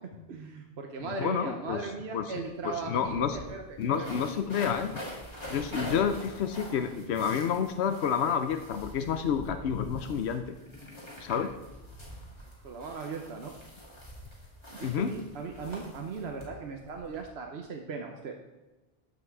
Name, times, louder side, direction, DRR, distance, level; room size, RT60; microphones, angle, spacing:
voice 1, 0.3-4.2 12.6-13.5 14.7-18.3, right 4 dB, 80° right, 2 dB, 1.2 m, -38 dB
voice 2, 1.0-2.3 2.6-3.4 3.8-5.0 5.5-10.5 11.2-11.5 14.8-15.1, left 7 dB, 85° left, 8 dB, 0.9 m, -29 dB
sound 1, 2.5-2.6 2.8-17.2, equal, 25° left, 2.6 m, -45 dB
13.0 x 5.8 x 4.7 m, 1.1 s
omnidirectional pair, 1.1 m